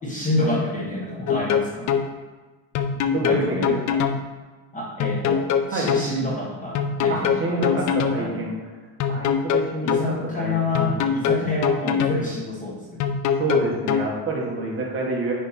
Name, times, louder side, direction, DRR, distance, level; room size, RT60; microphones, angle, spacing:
voice 1, 0.0-1.9 3.2-3.7 4.7-7.8 8.1-8.4 9.8-13.0, left 2 dB, 15° left, -4 dB, 1.1 m, -28 dB
sound 1, 1.3-2.1 2.7-4.2 5.0-6.1 6.7-8.2 9.0-10.1 10.7-12.2 13.0-14.1, left 7 dB, 40° left, 0.5 m, -22 dB
voice 2, 3.1-4.0 5.7-5.9 7.1-8.5 9.1-10.0 10.4-11.5 13.3-15.3, right 2 dB, 25° right, -3 dB, 1.4 m, -28 dB
9.9 x 3.5 x 4.3 m, 1.3 s
cardioid pair, 150°, 48 cm